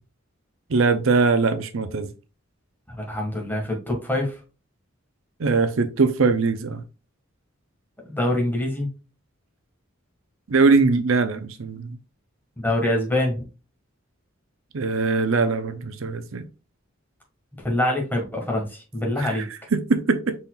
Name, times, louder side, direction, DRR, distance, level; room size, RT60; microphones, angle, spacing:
voice 1, 0.7-2.1 5.4-6.8 10.5-12.0 14.7-16.4 19.2-20.4, right 4 dB, 75° right, 0.6 m, -21 dB
voice 2, 2.9-4.3 8.1-8.9 12.6-13.4 17.6-19.5, left 1 dB, 10° left, 1.6 m, -25 dB
5.4 x 4.2 x 2.3 m
head